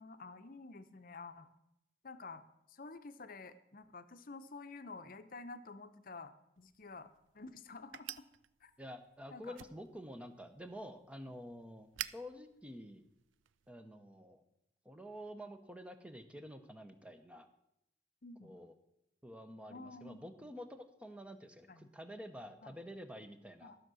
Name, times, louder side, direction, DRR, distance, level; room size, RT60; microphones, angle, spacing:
voice 1, 0.0-1.5 2.0-7.1 7.3-8.1 8.6-8.7 9.3-9.6 18.2-18.5 19.7-20.2 21.7-21.9 22.6-22.8 23.6-23.8, left 3 dB, 50° left, 10 dB, 0.7 m, -50 dB
sound 1, 6.6-13.7, right 12 dB, 85° right, 0.4 m, -51 dB
voice 2, 8.8-13.0 13.7-14.4 14.8-17.5 18.4-18.7 19.2-23.8, equal, 5° right, 8 dB, 0.8 m, -49 dB
13.0 x 6.6 x 6.2 m, 0.84 s
head